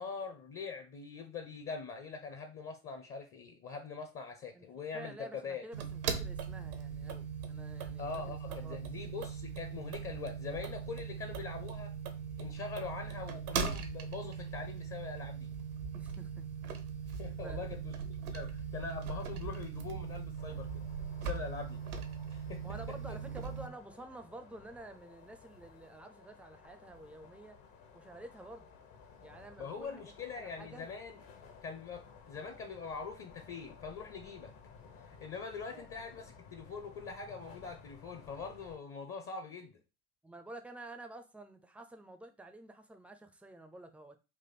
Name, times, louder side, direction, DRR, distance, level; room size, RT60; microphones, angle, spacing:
voice 1, 0.0-5.9 8.0-11.9 12.4-15.5 17.2-20.7 21.2-21.8 22.3-22.6 23.1-23.2 29.6-31.2 31.6-34.5 35.2-39.8, left 5 dB, 30° left, 0.7 m, -43 dB
voice 2, 4.9-8.9 15.9-16.5 17.4-17.6 22.6-27.6 27.9-28.7 29.2-30.9 35.7-35.9 40.2-44.2, right 1 dB, 5° right, 0.4 m, -50 dB
sound 1, 5.7-23.7, right 6 dB, 80° right, 0.8 m, -40 dB
sound 2, 20.4-38.8, left 5 dB, 50° left, 1.0 m, -56 dB
3.6 x 2.5 x 4.0 m
hypercardioid pair, 70°, 43 cm